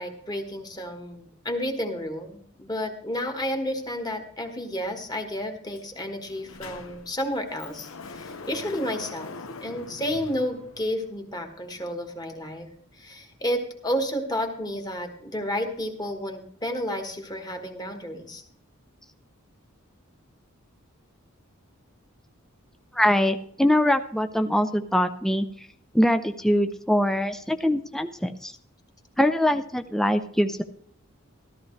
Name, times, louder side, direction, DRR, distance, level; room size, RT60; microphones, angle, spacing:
voice 1, 0.0-9.3 9.6-12.7 13.0-18.4, equal, 20° left, 5 dB, 1.5 m, -31 dB
Sliding door, 5.8-5.9 6.2-11.2, left 3 dB, 65° left, 0.8 m, -42 dB
voice 2, 22.9-25.5 25.9-28.6 29.2-30.6, left 1 dB, ahead, 8 dB, 0.4 m, -23 dB
14.0 x 13.5 x 3.2 m, 0.64 s
head